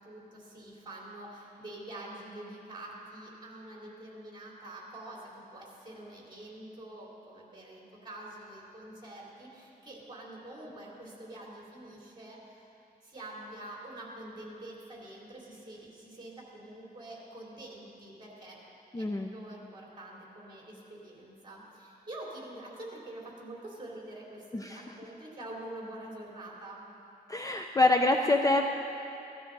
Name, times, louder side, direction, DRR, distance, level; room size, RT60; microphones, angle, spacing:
voice 1, 0.0-12.7 13.0-18.6 19.0-26.9, right 1 dB, 25° right, -4 dB, 3.3 m, -46 dB
voice 2, 18.9-19.3 24.5-24.8 27.3-28.6, left 2 dB, 20° left, 3 dB, 0.5 m, -25 dB
17.5 x 12.5 x 4.0 m, 2.8 s
wide cardioid pair, 135°, 17 cm